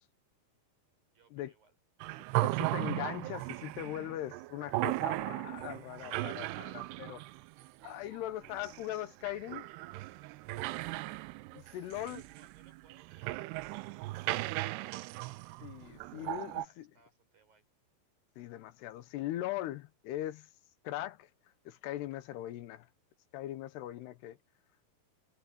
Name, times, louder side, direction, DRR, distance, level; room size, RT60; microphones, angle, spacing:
voice 1, 1.1-1.8 11.6-15.0 16.0-17.7 24.0-24.4, right 5 dB, 55° right, 8.0 m, -68 dB
sound 1, 2.0-16.7, right 19 dB, 85° right, 2.7 m, -37 dB
voice 2, 2.4-7.2 7.8-9.7 11.5-12.2 15.6-16.9 18.4-20.5 20.8-21.3 21.7-22.9 23.3-24.4, left 14 dB, 80° left, 3.0 m, -40 dB
omnidirectional pair, 4.8 m